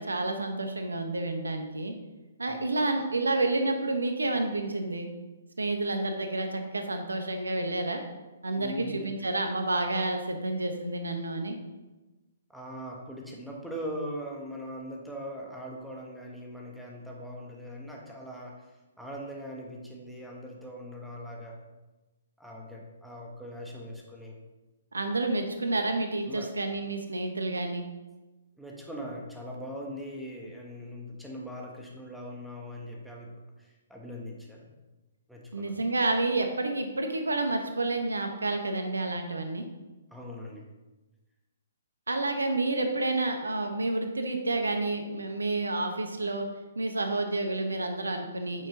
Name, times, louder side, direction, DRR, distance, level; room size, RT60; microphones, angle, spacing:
voice 1, 0.0-1.9 2.4-5.1 5.6-8.0 8.4-11.6 24.9-27.8 35.5-39.7 42.1-46.5 46.8-48.7, right 2 dB, 75° right, 5 dB, 1.1 m, -29 dB
voice 2, 8.5-9.1 12.5-18.7 19.0-21.6 22.4-24.4 26.3-26.5 28.6-34.8 35.3-35.7 40.1-40.6, equal, ahead, -2 dB, 1.4 m, -41 dB
8.9 x 6.1 x 3.9 m, 1.1 s
figure-of-eight pair, 125°, 0 cm